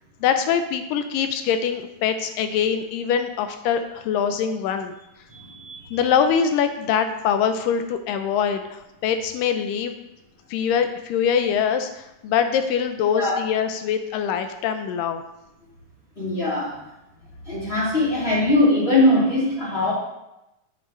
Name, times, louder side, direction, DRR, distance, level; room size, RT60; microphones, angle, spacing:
voice 1, 0.2-4.9 5.9-9.9 10.5-15.2, left 7 dB, 85° left, 8 dB, 2.3 m, -23 dB
voice 2, 5.3-6.0 13.1-13.4 16.2-16.8 17.5-19.9, left 1 dB, 20° left, -7 dB, 3.5 m, -21 dB
9.8 x 9.0 x 3.1 m, 0.90 s
omnidirectional pair, 3.8 m